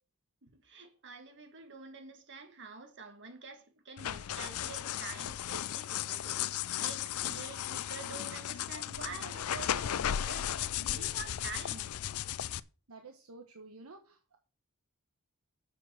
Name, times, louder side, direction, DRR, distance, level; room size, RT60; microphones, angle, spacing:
voice 1, 0.4-6.4 6.8-11.9, right 4 dB, 55° right, 2.0 m, -47 dB
sound 1, 4.0-12.6, left 10 dB, 80° left, 0.5 m, -35 dB
voice 2, 12.9-14.4, right 3 dB, 75° right, 1.1 m, -51 dB
7.6 x 6.4 x 6.4 m
head